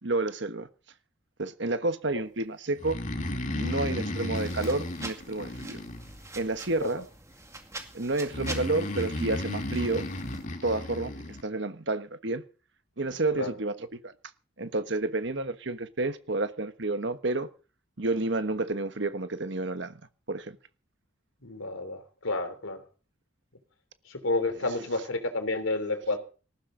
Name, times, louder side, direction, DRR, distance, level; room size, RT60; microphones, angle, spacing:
voice 1, 0.0-0.7 1.4-3.0 3.5-5.8 6.4-7.0 7.9-10.1 10.6-11.1 11.4-12.4 13.0-14.1 14.6-17.5 18.0-20.0 20.3-20.6 24.6-24.7, right 2 dB, 60° right, 1.3 m, -30 dB
Breathing, 2.8-6.5 8.3-11.4, left 1 dB, 35° left, 2.0 m, -34 dB
sound 1, 4.3-10.5, right 2 dB, 15° right, 2.2 m, -45 dB
voice 2, 21.4-22.8 24.1-26.2, left 2 dB, 80° left, 3.3 m, -30 dB
19.5 x 15.0 x 3.9 m
head